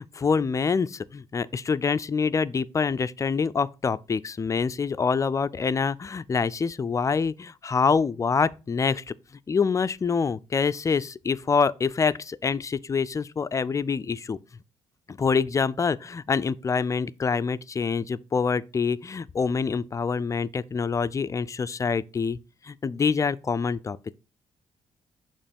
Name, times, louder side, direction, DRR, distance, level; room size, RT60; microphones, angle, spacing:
voice 1, 0.0-9.0 9.5-14.4 15.1-22.4 22.6-24.1, left 5 dB, 30° left, 0.3 m, -26 dB
6.8 x 3.0 x 5.2 m
cardioid pair, 75°, 11 cm